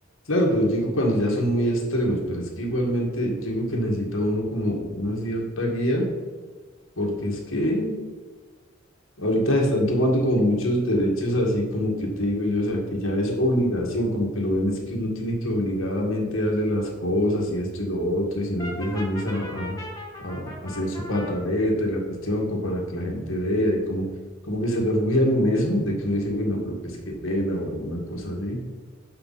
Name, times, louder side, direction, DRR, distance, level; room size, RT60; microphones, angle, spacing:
voice 1, 0.3-6.1 7.0-7.9 9.2-19.8 20.2-24.0 24.4-28.6, equal, 90° left, -1 dB, 1.9 m, -25 dB
Brass instrument, 18.6-21.3, left 1 dB, 20° left, 1.4 m, -38 dB
6.8 x 5.8 x 4.2 m, 1.4 s
head